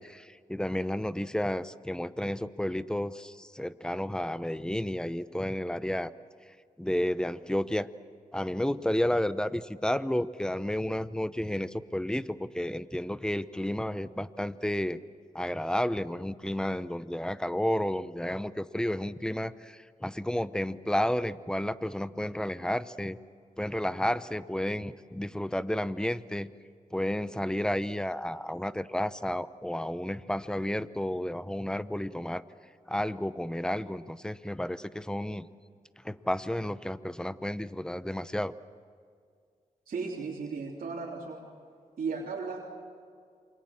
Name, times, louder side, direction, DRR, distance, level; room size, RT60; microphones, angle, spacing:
voice 1, 0.0-6.1 6.8-7.9 8.3-15.0 15.3-23.2 23.6-26.5 26.9-32.4 32.9-35.5 36.0-38.5, left 1 dB, 5° left, 14 dB, 0.8 m, -31 dB
voice 2, 39.9-41.5 42.0-42.6, right 4 dB, 80° right, -3 dB, 3.4 m, -35 dB
28.5 x 25.0 x 7.4 m, 2.1 s
wide cardioid pair, 90°, 15 cm